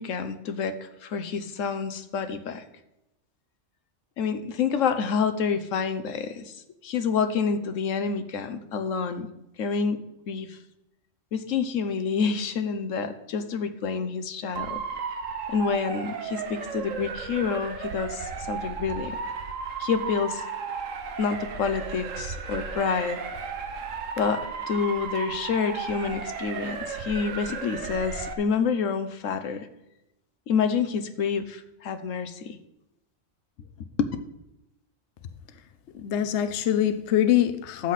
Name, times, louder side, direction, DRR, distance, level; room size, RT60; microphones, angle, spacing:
voice 1, 0.0-2.6 4.2-9.3 9.6-10.6 11.3-14.8 15.5-19.2 19.8-20.4 21.2-23.2 24.2-29.7 30.5-32.6 34.0-34.1, left 6 dB, 80° left, 1.2 m, -28 dB
Motor vehicle (road) / Siren, 14.5-28.3, right 5 dB, 85° right, 1.4 m, -34 dB
voice 2, 35.9-37.9, left 11 dB, 65° left, 1.0 m, -24 dB
12.5 x 7.9 x 4.1 m
omnidirectional pair, 1.3 m